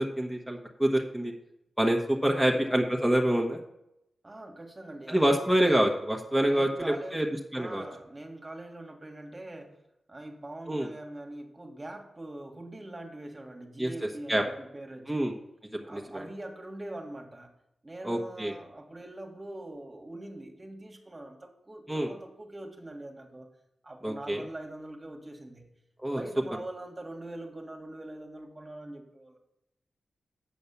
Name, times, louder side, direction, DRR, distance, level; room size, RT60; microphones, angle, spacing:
voice 1, 0.0-1.3 1.8-3.6 5.1-7.2 7.5-7.8 10.7-10.9 13.8-13.9 14.3-14.4 15.1-15.3 15.7-16.2 18.0-18.5 21.9-22.1 24.0-24.4 26.0-26.2, right 1 dB, ahead, 0 dB, 1.3 m, -26 dB
voice 2, 2.3-2.7 4.2-5.7 6.5-9.8 10.1-15.3 15.8-17.5 17.8-23.5 23.8-25.7 26.1-29.4, right 1 dB, 30° right, 2 dB, 1.7 m, -43 dB
8.3 x 5.4 x 7.1 m, 0.82 s
cardioid pair, 50°, 0 cm